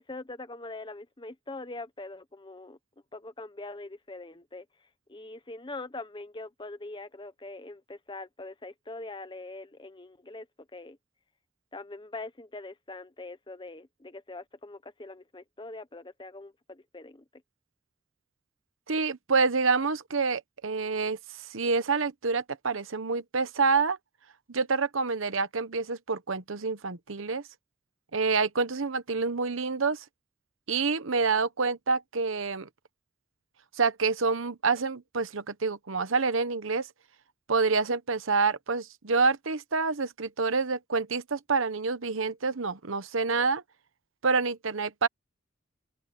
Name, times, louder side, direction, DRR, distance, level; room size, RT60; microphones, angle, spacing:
voice 1, 0.0-2.8 3.1-4.7 5.1-10.5 10.7-11.0 11.7-17.4, left 2 dB, 20° left, 0.9 m, -42 dB
voice 2, 18.9-24.0 24.5-27.4 28.1-30.0 30.7-32.7 33.7-36.9 37.5-43.6 44.2-45.1, right 4 dB, 75° right, 1.0 m, -27 dB
head